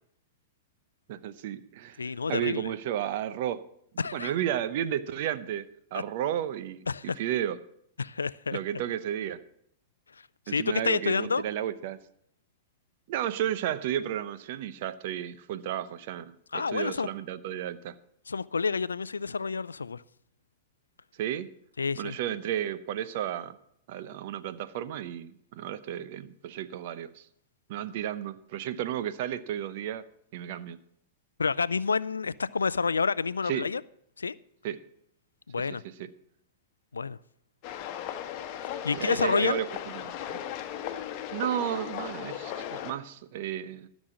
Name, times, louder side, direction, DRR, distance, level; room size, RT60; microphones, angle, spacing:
voice 1, 1.1-2.0 2.3-3.6 4.1-7.6 8.5-9.4 10.5-12.0 13.1-18.0 21.2-21.5 22.0-23.6 23.9-27.3 27.7-30.1 30.3-30.8 33.5-33.7 34.6-34.8 35.6-36.1 38.9-39.7 39.9-40.4 41.3-43.9, right 11 dB, 55° right, 0.8 m, -33 dB
voice 2, 2.0-2.7 4.0-4.3 6.9-7.2 8.0-8.6 10.5-11.4 16.5-17.1 18.3-20.0 21.8-22.2 31.4-33.8 34.2-34.4 35.5-35.8 36.9-37.2 38.8-39.6, left 5 dB, 85° left, 0.3 m, -29 dB
sound 1, 37.6-42.9, left 10 dB, 45° left, 1.1 m, -37 dB
13.5 x 6.3 x 7.4 m
hypercardioid pair, 105°, 0 cm